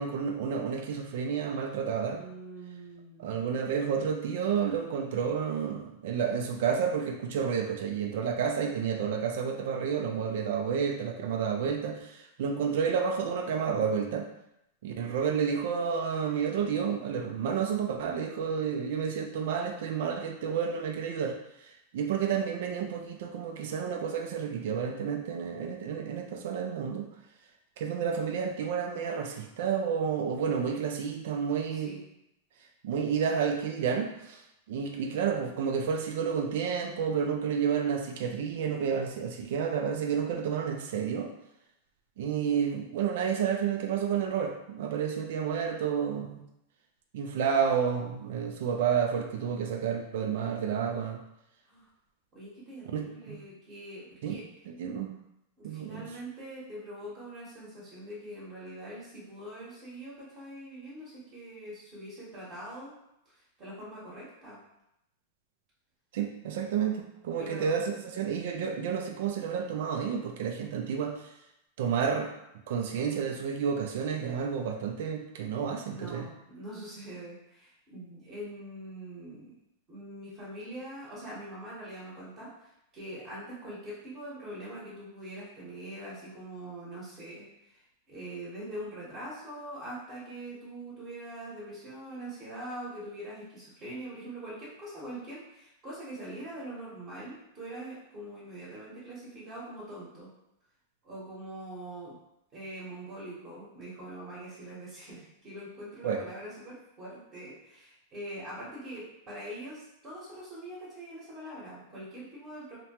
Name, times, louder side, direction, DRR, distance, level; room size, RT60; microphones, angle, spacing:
voice 1, 0.0-2.2 3.2-14.3 14.8-27.1 27.8-31.9 32.8-34.4 34.7-41.3 42.2-46.4 47.1-51.2 52.9-53.4 54.2-54.3 54.7-55.1 55.6-56.1 66.1-71.3 71.8-72.3 72.7-76.3 106.0-106.2, right 7 dB, 70° right, 3 dB, 0.4 m, -30 dB
voice 2, 2.1-3.5 31.7-32.0 51.7-51.9 52.3-54.4 55.6-62.9 63.3-64.6 67.4-67.8 75.8-79.5 79.9-87.8 88.1-100.3 101.0-102.2 102.5-112.8, right 1 dB, 35° right, -8 dB, 1.1 m, -43 dB
2.9 x 2.2 x 2.9 m, 0.84 s
supercardioid pair, 135°, 0 cm